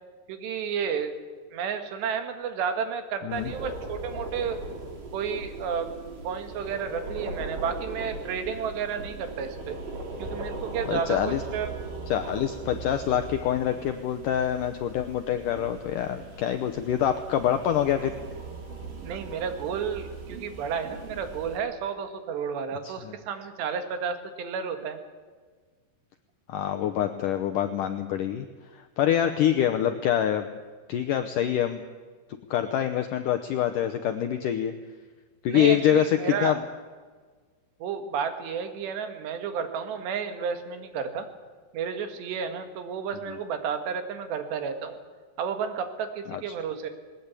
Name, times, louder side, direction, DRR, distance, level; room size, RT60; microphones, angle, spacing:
voice 1, 0.3-1.1 1.5-4.6 5.1-5.9 6.2-9.8 10.2-11.7 19.0-25.0 35.5-36.6 37.8-41.3 41.7-45.0 45.4-46.9, right 7 dB, 80° right, 7 dB, 3.9 m, -31 dB
sound 1, 3.3-21.6, right 3 dB, 55° right, 4.2 m, -39 dB
voice 2, 10.9-11.4 12.1-18.1 22.8-23.1 26.5-28.5 28.7-30.5 30.9-31.8 32.5-34.7 35.4-36.6 46.3-46.4, left 10 dB, 80° left, 7 dB, 1.9 m, -25 dB
20.0 x 19.5 x 8.4 m, 1.5 s
omnidirectional pair, 4.9 m